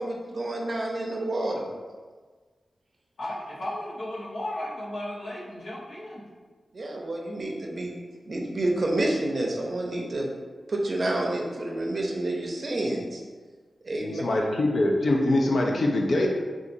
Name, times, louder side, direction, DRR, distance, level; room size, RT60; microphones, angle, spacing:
voice 1, 0.0-1.7 6.7-8.0 8.3-10.3 10.7-13.2 13.8-14.2, right 1 dB, 50° right, 0 dB, 0.5 m, -29 dB
voice 2, 3.2-6.2, left 1 dB, 85° left, -7 dB, 0.9 m, -35 dB
voice 3, 14.0-16.3, left 1 dB, 70° left, 0 dB, 0.5 m, -23 dB
3.9 x 2.4 x 2.6 m, 1.5 s
wide cardioid pair, 120°, 0 cm